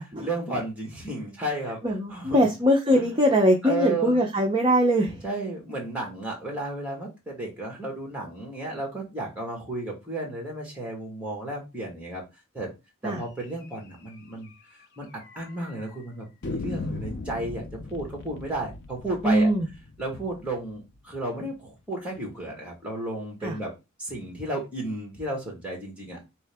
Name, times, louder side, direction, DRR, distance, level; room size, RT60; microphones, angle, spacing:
voice 1, 0.2-1.8 2.1-2.4 2.9-3.0 3.6-4.2 5.2-12.2 12.5-12.7 13.0-14.5 15.0-17.6 17.9-19.5 20.0-23.7 24.0-26.2, right 2 dB, 5° right, 0 dB, 1.4 m, -33 dB
voice 2, 1.8-5.2 13.0-13.2 19.2-19.7 23.4-23.6, equal, 20° right, 0 dB, 0.5 m, -22 dB
sound 1, 13.6-13.8 14.1-14.2 14.5-14.6 15.2-15.7 16.4-21.2, left 3 dB, 50° left, 0.4 m, -38 dB
3.7 x 2.8 x 3.4 m, 0.25 s
head